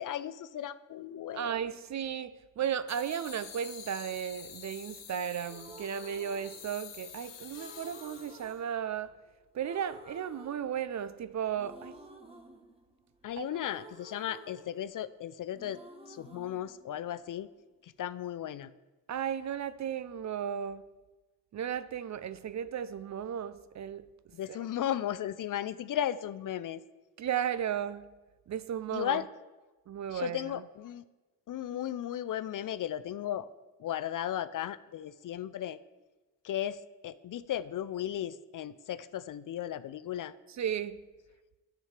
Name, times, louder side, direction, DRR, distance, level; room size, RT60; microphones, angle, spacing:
voice 1, 0.0-1.5 13.2-15.8 16.1-17.5 17.8-18.7 24.3-26.8 28.9-29.3 30.1-31.0 31.5-33.5 33.8-35.8 36.4-40.3, left 11 dB, 45° left, 0.4 m, -35 dB
voice 2, 1.3-9.1 9.5-12.0 13.4-13.5 19.1-20.8 21.5-24.1 24.5-24.6 27.2-28.1 28.5-29.2 29.9-30.6 40.6-41.0, right 9 dB, 40° right, 0.5 m, -35 dB
sound 1, 2.9-8.6, left 8 dB, 65° left, 1.3 m, -48 dB
sound 2, 5.4-7.1 7.6-9.3 9.6-11.2 11.6-15.3 15.5-17.6, right 2 dB, 10° right, 1.2 m, -52 dB
10.5 x 7.6 x 3.2 m
hypercardioid pair, 45°, 46 cm